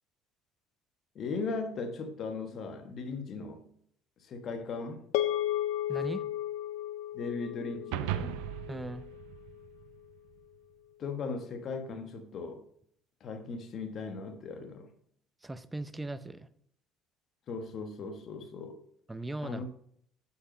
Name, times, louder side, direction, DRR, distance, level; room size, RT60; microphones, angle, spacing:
voice 1, 1.1-3.6 4.2-5.0 7.1-8.4 11.0-12.6 13.2-14.9 17.5-18.8 19.4-19.7, left 4 dB, 50° left, 1.2 m, -38 dB
sound 1, 5.1-9.6, left 13 dB, 85° left, 0.5 m, -34 dB
voice 2, 5.9-6.2 8.7-9.1 15.4-16.5 19.1-19.7, right 2 dB, 15° right, 0.6 m, -38 dB
sound 2, 7.9-10.4, right 13 dB, 85° right, 0.5 m, -38 dB
8.1 x 5.8 x 5.3 m
supercardioid pair, 100°, 0 cm